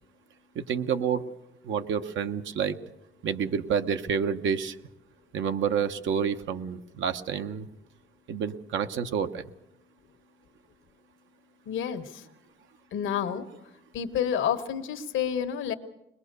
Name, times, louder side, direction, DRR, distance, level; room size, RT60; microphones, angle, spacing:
voice 1, 0.5-1.3 1.6-2.8 3.2-4.8 5.3-7.7 8.3-9.5, right 7 dB, 75° right, 8 dB, 1.1 m, -29 dB
voice 2, 11.7-12.2 12.9-13.4 13.9-15.7, left 8 dB, 80° left, 8 dB, 1.4 m, -29 dB
22.0 x 20.5 x 6.8 m, 0.89 s
cardioid pair, 90°, 20 cm